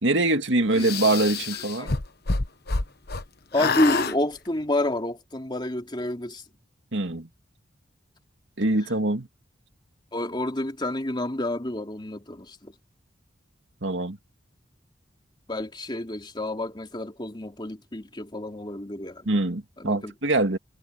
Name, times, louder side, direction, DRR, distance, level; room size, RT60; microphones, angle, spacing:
voice 1, 0.0-1.9 6.9-7.3 8.6-9.3 13.8-14.2 19.3-20.6, right 2 dB, 80° right, 2.2 m, -24 dB
sound 1, 0.8-3.2 3.5-4.1, left 3 dB, 60° left, 1.2 m, -27 dB
voice 2, 3.5-6.4 10.1-12.7 15.5-19.4 19.8-20.1, left 1 dB, 25° left, 3.0 m, -29 dB
head